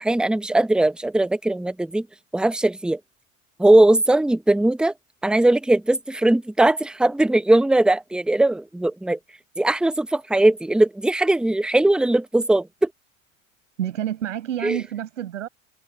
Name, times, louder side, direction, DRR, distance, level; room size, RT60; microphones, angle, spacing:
voice 1, 0.0-2.1 2.3-3.0 3.6-4.9 5.2-9.2 9.6-12.9 14.6-14.8, right 1 dB, ahead, 1.2 m, -19 dB
voice 2, 13.8-15.5, right 11 dB, 65° right, 6.9 m, -28 dB
figure-of-eight pair, 80°, 40 cm